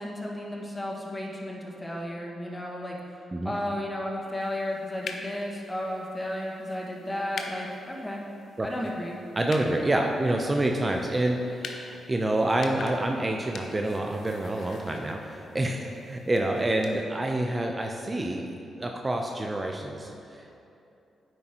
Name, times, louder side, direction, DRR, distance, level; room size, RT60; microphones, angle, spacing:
voice 1, 0.0-3.0 3.4-8.2 8.6-9.2 10.0-10.1, left 1 dB, 20° left, -2 dB, 1.7 m, -33 dB
sound 1, 4.4-17.0, left 4 dB, 65° left, 0.7 m, -45 dB
voice 2, 9.4-20.7, right 1 dB, 30° right, 2 dB, 0.7 m, -28 dB
9.4 x 7.8 x 3.0 m, 2.7 s
hypercardioid pair, 40°, 0 cm